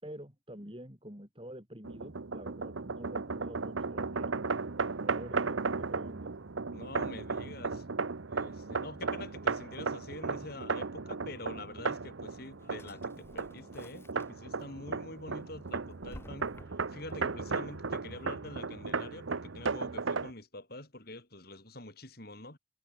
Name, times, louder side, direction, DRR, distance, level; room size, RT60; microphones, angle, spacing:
voice 1, 0.0-4.5 5.0-6.3, equal, 25° right, 4.9 m, -47 dB
sound 1, 1.8-20.3, right 4 dB, 75° right, 0.9 m, -35 dB
voice 2, 6.7-7.9 8.3-16.5 16.9-22.6, left 2 dB, 50° left, 5.0 m, -46 dB
Drawer open or close, 12.3-14.6 15.1-17.1, left 1 dB, 10° left, 2.3 m, -54 dB
head